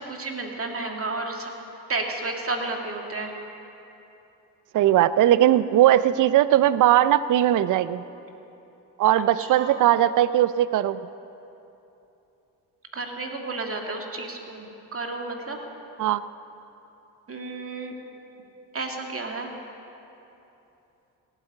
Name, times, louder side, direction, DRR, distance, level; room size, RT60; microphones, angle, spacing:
voice 1, 0.0-1.5 1.9-3.3 9.4-9.9 12.9-15.6 17.3-17.9 18.7-19.5, right 3 dB, 35° right, 2 dB, 2.4 m, -32 dB
voice 2, 4.7-8.0 9.0-11.0 16.0-16.2, right 12 dB, 50° right, 16 dB, 0.6 m, -19 dB
17.0 x 8.2 x 8.7 m, 2.9 s
supercardioid pair, 60°, 41 cm